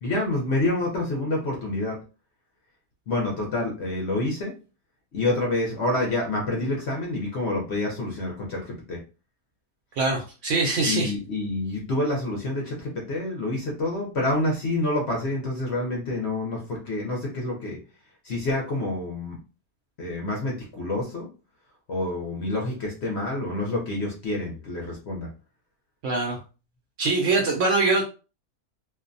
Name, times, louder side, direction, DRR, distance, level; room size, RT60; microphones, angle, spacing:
voice 1, 0.0-2.0 3.1-4.5 5.1-9.0 10.9-17.8 18.2-19.4 20.0-21.3 21.9-25.3, left 2 dB, 60° left, -1 dB, 0.8 m, -28 dB
voice 2, 10.0-11.1 26.0-26.4 27.0-28.0, right 3 dB, 70° right, 0 dB, 0.7 m, -23 dB
2.6 x 2.1 x 2.5 m, 0.33 s
omnidirectional pair, 1.6 m